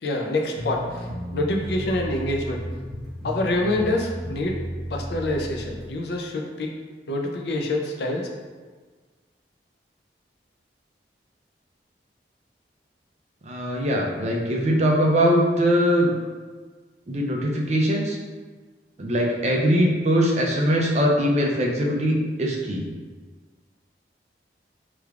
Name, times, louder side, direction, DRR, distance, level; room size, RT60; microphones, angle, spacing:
voice 1, 0.0-2.6 3.2-4.6 4.9-6.7 7.1-8.3, left 1 dB, 70° left, 1 dB, 0.4 m, -26 dB
sound 1, 0.5-5.9, equal, ahead, 0.9 m, -33 dB
voice 2, 13.5-16.1 17.1-18.2 19.0-22.8, equal, 40° right, -1 dB, 0.5 m, -21 dB
3.4 x 3.3 x 2.4 m, 1.4 s
head